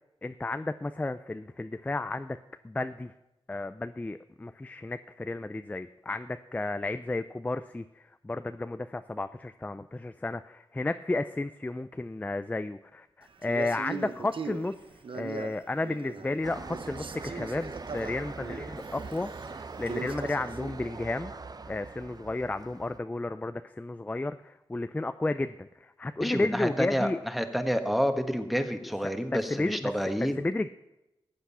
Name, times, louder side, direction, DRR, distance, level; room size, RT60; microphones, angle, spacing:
voice 1, 0.2-2.4 2.6-3.1 3.5-14.8 15.1-21.3 21.6-27.2 29.3-30.7, left 2 dB, 15° left, 11 dB, 0.4 m, -33 dB
Male speech man speaking, 13.4-16.4 16.7-20.8, right 5 dB, 70° right, 0.9 m, -40 dB
sound 1, 16.4-23.0, right 4 dB, 45° right, 0.6 m, -42 dB
voice 2, 26.2-30.4, equal, ahead, 7 dB, 1.4 m, -29 dB
15.0 x 8.2 x 5.6 m, 0.95 s
cardioid pair, 55°, 9 cm